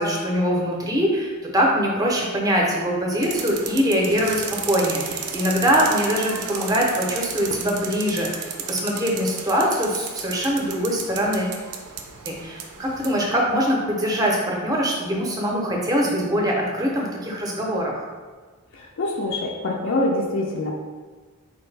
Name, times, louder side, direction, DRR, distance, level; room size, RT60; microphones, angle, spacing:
voice 1, 0.0-11.5 12.3-18.1, equal, 15° right, -1 dB, 0.6 m, -23 dB
sound 1, 3.2-13.2, right 6 dB, 90° right, 0.5 m, -34 dB
voice 2, 18.7-20.7, left 2 dB, 60° left, -2 dB, 0.4 m, -25 dB
4.2 x 2.6 x 3.2 m, 1.4 s
head